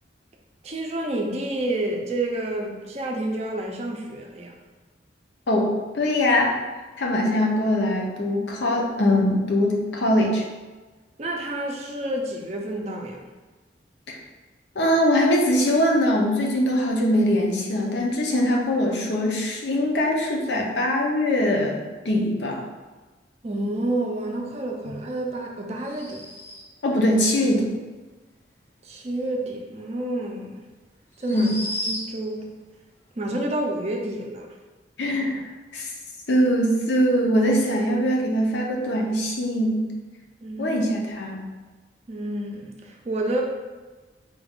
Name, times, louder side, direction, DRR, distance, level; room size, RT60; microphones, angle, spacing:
voice 1, 0.6-4.5 11.2-13.2 23.4-26.2 28.8-30.6 31.2-31.5 31.9-32.5 33.2-34.5 40.4-40.8 42.1-43.4, right 1 dB, 35° right, 0 dB, 0.5 m, -29 dB
voice 2, 5.5-6.6 7.0-10.4 14.1-14.2 14.8-21.8 22.0-22.6 24.9-25.0 26.8-27.8 31.3-31.6 35.0-35.4 35.7-35.9 36.3-39.8 40.6-41.5, left 1 dB, 75° left, 0 dB, 0.7 m, -22 dB
sound 1, 25.8-26.9 30.0-30.1 31.1-32.4, left 1 dB, 15° left, 0.5 m, -34 dB
4.0 x 2.4 x 3.5 m, 1.3 s
head